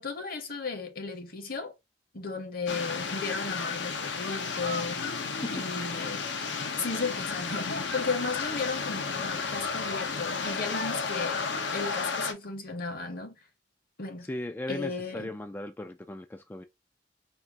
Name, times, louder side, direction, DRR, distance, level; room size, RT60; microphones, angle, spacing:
voice 1, 0.0-1.7 2.1-5.1 5.5-6.2 6.8-11.4 11.7-13.3 14.0-14.3 14.7-15.3, left 4 dB, 55° left, 1.0 m, -35 dB
sound 1, 2.7-12.3, left 4 dB, 80° left, 0.7 m, -32 dB
voice 2, 14.2-16.7, left 1 dB, 10° left, 0.3 m, -37 dB
4.4 x 2.4 x 3.4 m
head